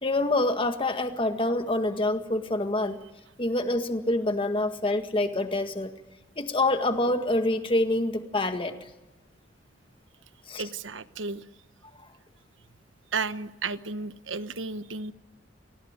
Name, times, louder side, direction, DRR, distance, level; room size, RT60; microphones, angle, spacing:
voice 1, 0.0-3.0 3.4-5.9 6.4-8.7 10.5-10.6, left 2 dB, 30° left, 7 dB, 1.8 m, -26 dB
voice 2, 10.6-11.4 13.1-15.1, right 4 dB, 85° right, 12 dB, 1.1 m, -33 dB
27.5 x 19.5 x 9.6 m, 1.1 s
head